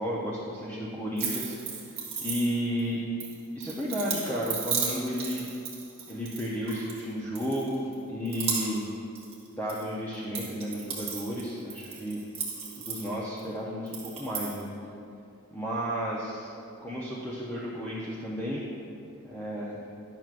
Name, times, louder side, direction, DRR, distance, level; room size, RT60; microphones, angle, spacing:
voice 1, 0.0-3.0 3.5-5.4 6.1-8.9 9.6-12.2 12.8-14.7 15.5-16.5 16.8-18.7 19.2-19.8, equal, 10° left, -7 dB, 0.6 m, -33 dB
sound 1, 1.2-2.8 3.2-7.0 7.3-7.9 8.2-9.8 10.1-13.4 13.9-14.6, right 5 dB, 25° right, 1.3 m, -35 dB
10.5 x 6.0 x 2.5 m, 2.6 s
head